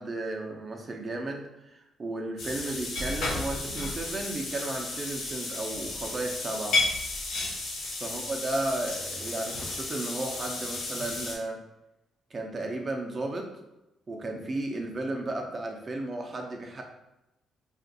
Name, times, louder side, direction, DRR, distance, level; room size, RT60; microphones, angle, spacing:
voice 1, 0.0-6.8 8.0-11.6 12.3-13.5 14.1-16.8, right 2 dB, 35° right, 2 dB, 0.6 m, -34 dB
sound 1, 2.4-11.3, left 2 dB, 85° left, 1.0 m, -33 dB
2.5 x 2.4 x 4.0 m, 0.94 s
cardioid pair, 90°, 0 cm